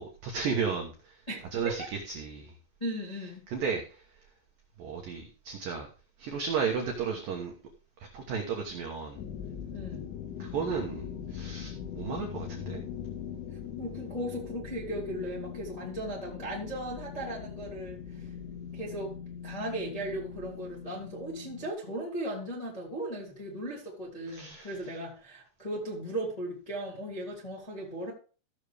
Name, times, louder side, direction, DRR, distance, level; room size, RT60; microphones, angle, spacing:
voice 1, 0.0-1.2 1.5-2.5 3.5-4.2 4.8-5.9 6.2-7.5 8.0-9.2 10.4-12.8 24.3-24.8, right 6 dB, 75° right, 2.0 m, -34 dB
voice 2, 1.3-1.9 2.8-3.4 9.7-10.1 13.8-18.3 18.7-19.2 19.4-28.1, right 1 dB, 15° left, 1.2 m, -37 dB
sound 1, 9.2-21.7, left 8 dB, 85° left, 3.6 m, -41 dB
16.5 x 6.6 x 3.4 m
omnidirectional pair, 6.0 m